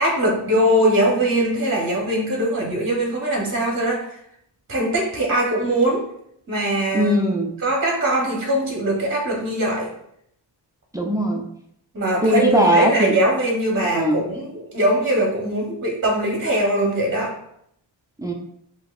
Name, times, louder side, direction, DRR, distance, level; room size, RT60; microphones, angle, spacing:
voice 1, 0.0-4.1 4.7-6.0 6.5-7.4 7.6-9.9 11.9-17.4, right 1 dB, 25° right, -2 dB, 0.8 m, -21 dB
voice 2, 6.9-7.5 10.9-11.4 12.2-13.2 13.8-14.2 18.2-18.3, equal, 10° right, 1 dB, 0.3 m, -19 dB
7.8 x 2.8 x 2.4 m, 0.72 s
wide cardioid pair, 175°, 48 cm